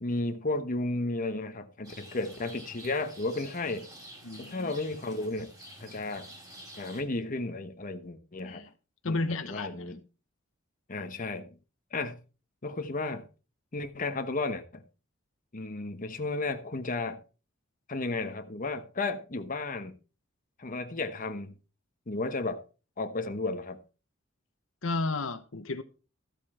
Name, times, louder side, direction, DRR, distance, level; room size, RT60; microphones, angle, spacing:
voice 1, 0.0-3.9 4.4-5.5 5.8-6.3 6.8-8.6 9.0-10.0 10.9-11.5 11.9-12.2 12.6-13.3 13.7-14.8 15.5-17.2 17.9-20.0 20.6-21.5 22.1-22.6 23.0-23.8, left 2 dB, 40° left, 1.1 m, -33 dB
Rain, 1.8-7.0, right 1 dB, 20° right, 4.7 m, -49 dB
voice 2, 4.2-4.7 8.5-8.7 9.0-9.9 24.8-25.8, left 3 dB, 70° left, 1.0 m, -33 dB
13.5 x 8.2 x 4.3 m
head